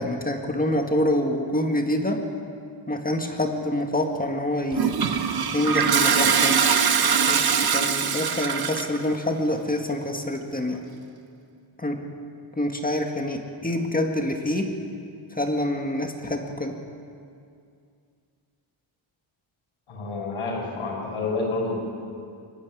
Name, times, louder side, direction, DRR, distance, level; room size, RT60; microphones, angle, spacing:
voice 1, 0.0-2.2 2.9-5.0 5.5-6.6 7.3-10.8 11.8-12.0 12.6-14.7 15.3-16.8, left 1 dB, 15° left, 3 dB, 1.8 m, -26 dB
Toilet flush, 4.7-9.0, right 6 dB, 50° right, 1.5 m, -22 dB
voice 2, 19.9-21.8, left 3 dB, 80° left, -1 dB, 6.7 m, -29 dB
23.5 x 13.0 x 9.9 m, 2.3 s
cardioid pair, 120°, 49 cm